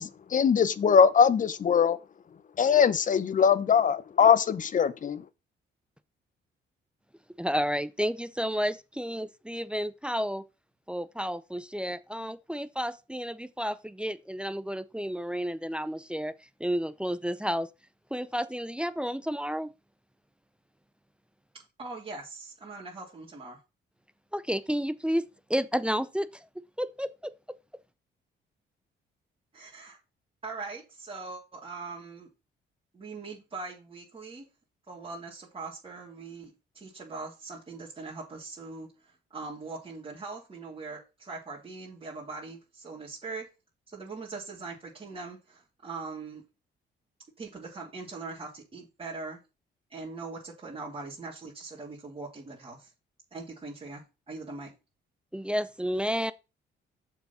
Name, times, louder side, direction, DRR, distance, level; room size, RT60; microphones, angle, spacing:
voice 1, 0.0-2.0 2.6-5.2, left 7 dB, 40° left, 0.7 m, -22 dB
voice 2, 7.4-10.4 10.9-16.3 16.6-17.7 18.1-19.7 24.3-26.5 26.8-27.3 55.3-56.3, equal, 5° right, 0.6 m, -31 dB
voice 3, 21.8-23.6 29.5-30.0 30.4-32.3 32.9-34.5 34.9-43.4 43.9-46.4 47.4-49.4 49.9-52.9 53.3-54.7, right 3 dB, 30° right, 3.1 m, -41 dB
6.9 x 4.8 x 5.6 m
cardioid pair, 90°, 20 cm